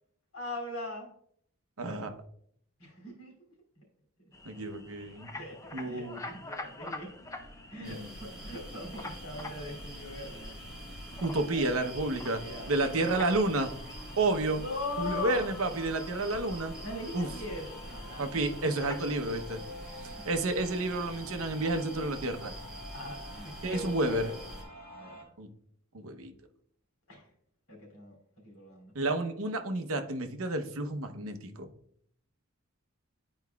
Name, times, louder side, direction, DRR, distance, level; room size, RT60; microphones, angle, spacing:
voice 1, 0.3-1.1 2.8-3.3 5.3-7.1 7.7-10.5 11.5-11.9 12.4-12.7 13.1-13.2 14.6-15.5 16.8-18.4 19.8-20.0 22.9-24.3 24.9-25.3 27.1-27.2 27.7-28.2 28.4-28.9, left 2 dB, 75° left, -1 dB, 2.8 m, -40 dB
voice 2, 1.8-2.1 4.4-5.3 5.7-6.3 7.8-8.1 11.2-12.4 12.7-13.7 14.2-14.6 15.0-16.7 17.1-17.3 18.2-19.6 20.0-22.5 23.6-24.3 25.4-25.5 25.9-26.3 28.9-31.7, right 2 dB, 65° right, 6 dB, 0.9 m, -30 dB
sound 1, 4.3-19.1, left 2 dB, 15° left, 0.5 m, -47 dB
sound 2, 6.2-25.2, left 1 dB, 40° left, 1.3 m, -50 dB
sound 3, 7.8-24.6, equal, 5° right, 1.6 m, -45 dB
11.5 x 4.8 x 2.3 m, 0.66 s
head